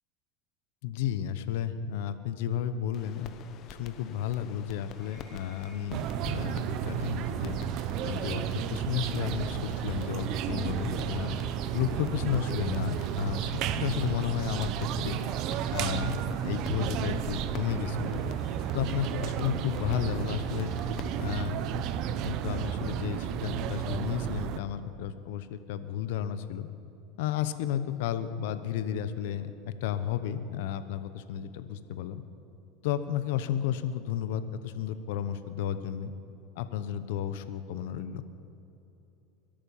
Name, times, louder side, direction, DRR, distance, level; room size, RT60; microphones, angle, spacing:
voice 1, 0.8-3.3 3.7-7.6 8.0-11.3 11.7-14.7 15.0-15.2 15.7-16.2 16.4-18.3 18.7-20.7 21.2-21.8 22.2-26.7 27.2-32.2 32.8-36.1 36.6-38.2, left 10 dB, 75° left, 12 dB, 0.9 m, -33 dB
sound 1, 2.9-21.0, left 7 dB, 45° left, 1.0 m, -49 dB
sound 2, 4.9-6.2 7.5-7.7 8.6-8.8, right 2 dB, 15° right, 4.7 m, -58 dB
sound 3, 5.9-24.6, right 9 dB, 55° right, 0.8 m, -32 dB
22.5 x 8.9 x 7.2 m, 2.9 s
supercardioid pair, 125°, 0 cm